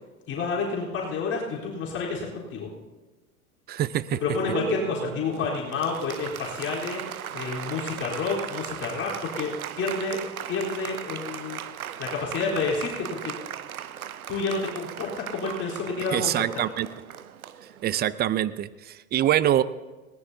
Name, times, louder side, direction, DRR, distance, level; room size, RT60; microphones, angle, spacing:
voice 1, 0.3-2.7 4.2-7.0 7.3-10.2 10.5-11.6 12.0-13.3 14.3-16.5, left 4 dB, 35° left, -5 dB, 4.0 m, -29 dB
voice 2, 3.7-4.2 16.1-16.9 17.8-19.6, right 12 dB, 25° right, 17 dB, 0.6 m, -24 dB
Applause, 4.1-18.2, right 9 dB, 85° right, 0.7 m, -37 dB
20.5 x 19.0 x 2.8 m, 1.2 s
hypercardioid pair, 85°, 42 cm